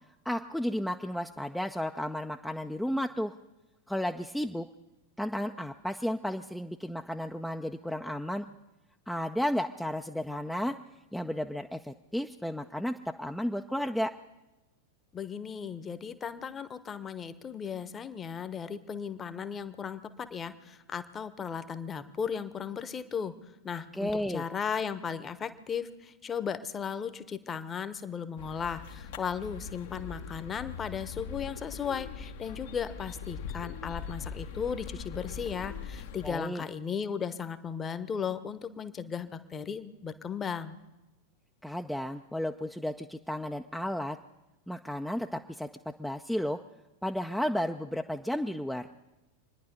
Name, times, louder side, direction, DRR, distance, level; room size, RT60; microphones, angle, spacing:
voice 1, 0.2-3.3 3.9-4.7 5.2-8.5 9.1-10.8 11.1-14.1 23.9-24.4 36.2-36.6 41.6-44.2 44.7-45.7 46.0-46.6 47.0-48.9, equal, ahead, 5 dB, 0.5 m, -33 dB
voice 2, 15.1-23.3 23.6-40.8, left 7 dB, 20° left, 12 dB, 1.0 m, -36 dB
sound 1, 28.4-36.3, left 6 dB, 55° left, 1.0 m, -41 dB
27.0 x 10.5 x 5.3 m, 0.99 s
figure-of-eight pair, 90°, 0 cm